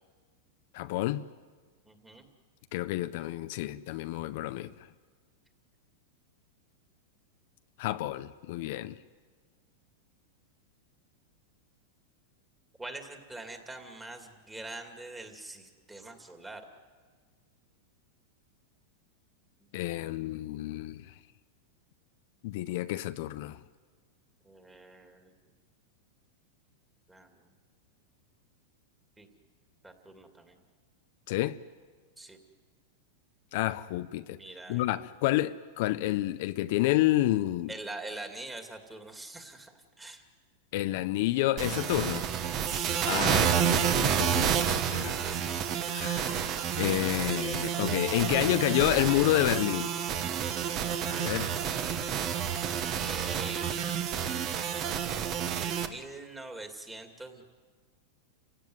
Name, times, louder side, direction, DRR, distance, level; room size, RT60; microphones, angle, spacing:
voice 1, 0.7-1.3 2.7-4.9 7.8-9.0 19.7-21.1 22.4-23.6 31.3-31.6 33.5-34.4 34.7-37.7 40.7-42.3 43.1-45.2 45.9-50.0 51.0-51.5, left 16 dB, 60° left, 0.6 m, -29 dB
voice 2, 1.8-2.3 12.8-16.7 20.0-20.1 24.4-25.5 27.1-27.5 29.2-29.3 29.8-30.6 32.2-32.4 34.3-34.8 37.7-40.2 42.7-43.0 53.0-54.2 55.6-57.4, right 2 dB, 10° right, 2.5 m, -44 dB
sound 1, 41.6-55.9, right 8 dB, 40° right, 1.5 m, -29 dB
29.0 x 17.0 x 9.5 m
supercardioid pair, 140°, 0 cm